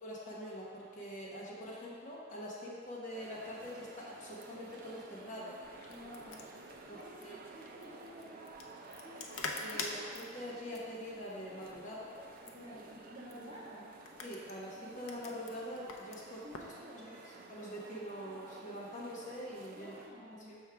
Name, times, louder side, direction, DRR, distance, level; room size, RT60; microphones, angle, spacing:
voice 1, 0.0-5.5 6.9-7.4 9.3-12.1 14.2-16.4 17.0-17.1 17.5-20.0 20.5-20.6, equal, 35° left, -5 dB, 1.0 m, -44 dB
sound 1, 3.1-20.1, right 2 dB, 45° right, 0.5 m, -53 dB
sound 2, 5.6-16.8, left 3 dB, 80° left, 0.6 m, -47 dB
voice 2, 5.9-6.4 6.8-8.5 9.0-9.3 9.7-9.9 12.4-13.9 16.3-17.1 19.7-20.6, equal, 30° right, -8 dB, 1.5 m, -52 dB
6.3 x 3.6 x 5.8 m, 2.2 s
head